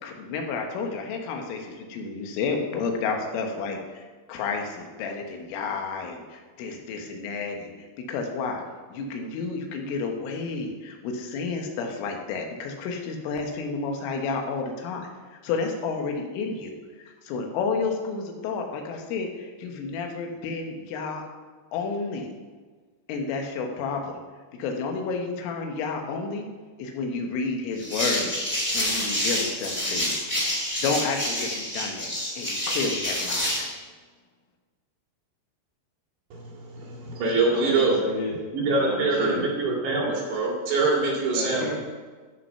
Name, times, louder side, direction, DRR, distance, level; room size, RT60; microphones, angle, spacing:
voice 1, 0.0-4.0 4.3-8.6 8.9-15.1 15.4-21.2 21.7-22.3 23.1-24.2 24.6-26.5 26.8-28.3 28.7-30.2 30.8-33.7, left 4 dB, 85° left, 2 dB, 3.8 m, -31 dB
sound 1, 27.8-33.7, left 1 dB, 10° left, 1.6 m, -28 dB
voice 2, 36.3-38.0 38.5-41.8, right 3 dB, 65° right, -2 dB, 4.0 m, -24 dB
voice 3, 37.4-38.3 38.7-39.5 41.3-41.8, left 2 dB, 55° left, -4 dB, 2.9 m, -32 dB
13.5 x 5.6 x 5.6 m, 1.4 s
omnidirectional pair, 5.7 m